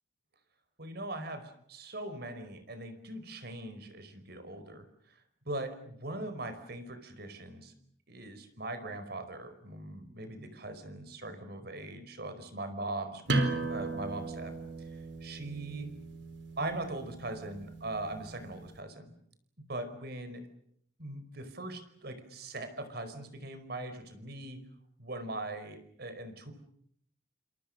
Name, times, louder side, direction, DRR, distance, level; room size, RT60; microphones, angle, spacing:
voice 1, 0.8-5.2 5.4-7.7 8.1-15.9 16.6-19.1 19.6-20.5 21.0-24.6 25.0-26.5, right 2 dB, 55° right, 10 dB, 4.9 m, -41 dB
sound 1, 13.3-18.7, right 2 dB, 75° right, 4.4 m, -36 dB
29.0 x 27.0 x 6.6 m, 0.69 s
head